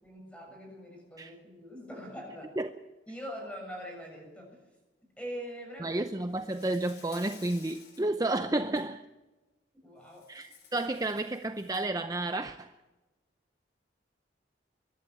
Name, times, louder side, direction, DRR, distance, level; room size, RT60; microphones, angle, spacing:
voice 1, 0.0-2.5 3.1-4.6 5.2-6.0 9.8-10.3, equal, 5° left, 7.1 m, -43 dB
voice 2, 5.8-9.0 10.3-12.7, right 2 dB, 20° right, 0.7 m, -31 dB
Insect, 6.3-8.1 8.6-8.8 10.1-12.0, left 6 dB, 60° left, 3.9 m, -54 dB
23.0 x 12.0 x 9.4 m
head